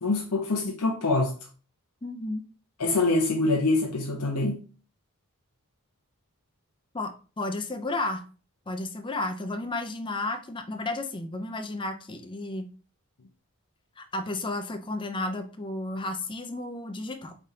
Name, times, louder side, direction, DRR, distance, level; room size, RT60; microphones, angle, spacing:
voice 1, 0.0-1.4 2.8-4.7, left 2 dB, 85° left, 0.7 m, -25 dB
voice 2, 2.0-2.4 6.9-8.2 8.7-12.7 14.0-17.4, left 2 dB, 20° left, 0.5 m, -32 dB
4.9 x 3.4 x 2.8 m
head